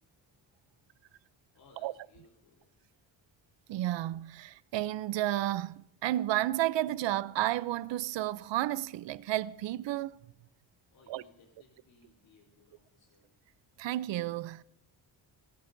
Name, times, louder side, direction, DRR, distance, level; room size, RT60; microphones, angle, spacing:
voice 1, 1.5-2.7 10.9-13.3, left 3 dB, 85° left, 3.7 m, -62 dB
voice 2, 3.7-10.1 11.1-11.2 13.8-14.6, right 14 dB, 75° right, 0.6 m, -32 dB
25.5 x 17.5 x 2.6 m
wide cardioid pair, 170°, 44 cm